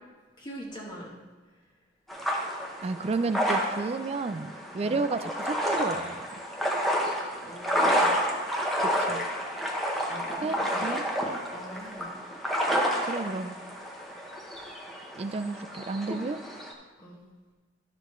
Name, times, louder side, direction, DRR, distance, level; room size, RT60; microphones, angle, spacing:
voice 1, 0.4-1.2 4.8-4.9 7.4-8.1 10.1-10.8 11.5-12.2 17.0-17.3, equal, 25° left, -3 dB, 1.1 m, -42 dB
sound 1, 2.1-16.7, equal, ahead, 0.9 m, -30 dB
voice 2, 2.8-6.3 8.8-9.2 10.4-11.1 13.1-13.5 15.2-16.4, right 3 dB, 30° right, 12 dB, 0.3 m, -31 dB
12.0 x 6.6 x 3.1 m, 1.3 s
head